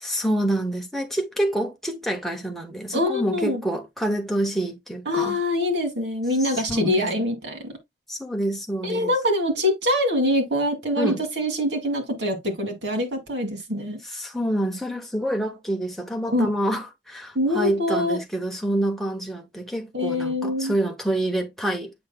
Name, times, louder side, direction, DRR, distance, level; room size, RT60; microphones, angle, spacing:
voice 1, 0.0-5.4 6.4-7.3 8.1-9.1 11.0-11.2 14.0-21.9, right 1 dB, ahead, 1.0 m, -27 dB
voice 2, 2.9-3.6 5.1-7.7 8.8-14.0 16.3-16.5 17.3-18.2 19.9-20.7, left 1 dB, 85° right, 2.2 m, -24 dB
7.8 x 5.6 x 2.3 m
head